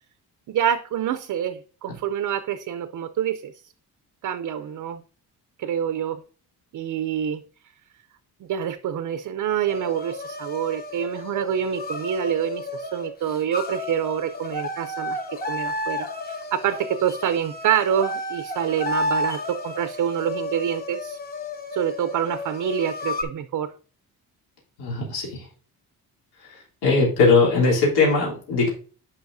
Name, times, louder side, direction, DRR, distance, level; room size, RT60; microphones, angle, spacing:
voice 1, 0.5-3.5 4.2-5.0 5.6-6.2 6.7-7.4 8.5-15.2 15.5-21.2 21.7-23.7, right 9 dB, 55° right, 10 dB, 0.6 m, -26 dB
sound 1, 9.7-23.2, left 2 dB, 25° left, 0.9 m, -32 dB
voice 2, 24.8-25.4 26.8-28.7, left 4 dB, 85° left, -5 dB, 3.3 m, -19 dB
10.5 x 5.1 x 2.7 m, 0.39 s
cardioid pair, 165°, 39 cm